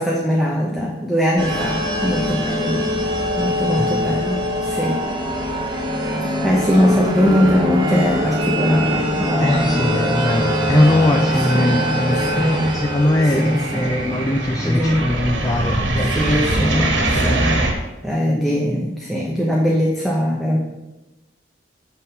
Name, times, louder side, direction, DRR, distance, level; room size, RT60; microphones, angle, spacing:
voice 1, 0.0-2.9 3.3-5.0 6.4-9.9 10.8-10.9 11.5-11.8 12.1-12.8 13.3-14.0 14.6-15.1 16.0-17.7 18.0-20.6, equal, ahead, -2 dB, 0.8 m, -21 dB
sound 1, 1.4-17.2, equal, 25° right, 1.0 m, -23 dB
voice 2, 3.8-4.2 9.4-16.7 17.0-17.7, left 1 dB, 20° left, 3 dB, 0.4 m, -21 dB
sound 2, 8.7-9.4 9.7-17.7, right 2 dB, 85° right, 1.5 m, -25 dB
8.3 x 3.7 x 6.7 m, 1.1 s
head